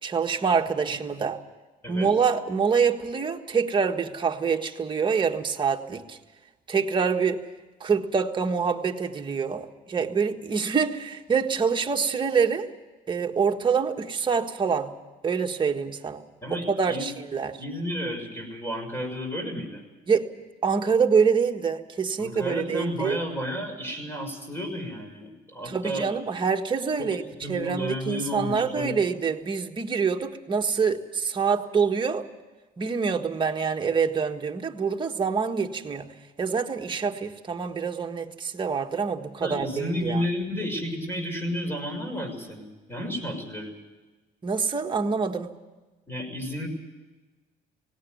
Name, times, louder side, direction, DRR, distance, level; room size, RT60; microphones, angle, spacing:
voice 1, 0.0-1.4 1.9-6.2 6.7-7.4 7.8-12.7 13.1-14.9 15.2-16.2 16.5-17.6 20.1-20.3 20.6-23.2 25.6-27.2 27.5-32.2 32.8-36.0 36.4-40.2 44.4-45.5, right 5 dB, 30° right, 3 dB, 1.6 m, -26 dB
voice 2, 16.4-17.2 17.6-19.8 22.2-26.1 27.0-29.0 39.4-43.7 46.1-46.7, equal, 15° left, 5 dB, 6.2 m, -32 dB
18.0 x 17.5 x 9.4 m, 1.2 s
cardioid pair, 110°, 17 cm